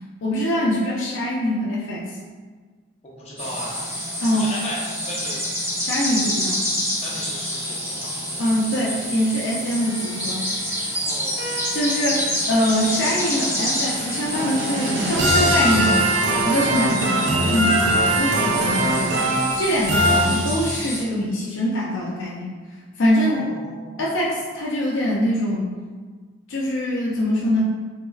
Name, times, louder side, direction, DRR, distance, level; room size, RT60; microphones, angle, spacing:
voice 1, 0.2-2.1 4.2-4.5 5.8-6.6 8.4-10.5 11.4-19.2 19.5-22.5 23.0-23.5 24.0-25.7 26.5-27.6, left 1 dB, 75° left, -5 dB, 0.5 m, -23 dB
voice 2, 3.0-3.8 4.3-5.5 7.0-8.4 10.9-11.4 23.2-24.1, left 1 dB, 30° left, -5 dB, 0.6 m, -36 dB
sound 1, 3.4-21.0, equal, 15° right, 0.8 m, -28 dB
sound 2, 9.7-15.5, right 2 dB, 90° right, 0.9 m, -37 dB
sound 3, 12.0-20.9, right 1 dB, 65° right, 0.5 m, -22 dB
3.4 x 3.1 x 2.3 m, 1.5 s
head